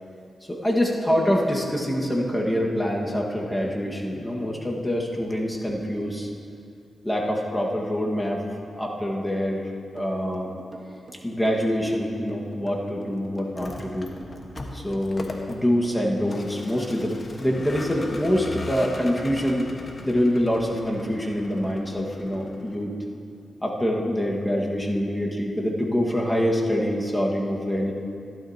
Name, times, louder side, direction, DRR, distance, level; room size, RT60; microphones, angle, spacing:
voice 1, 0.5-6.3 7.0-8.4 8.8-9.6 9.9-10.5 11.2-14.1 14.7-19.7 20.0-22.9 23.6-27.9, equal, 10° left, -2 dB, 1.6 m, -25 dB
sound 1, 10.0-15.2, right 2 dB, 35° right, 1.5 m, -45 dB
Vehicle, 13.4-22.8, left 2 dB, 40° left, 1.3 m, -39 dB
15.5 x 12.5 x 2.9 m, 2.5 s
cardioid pair, 75°, 0 cm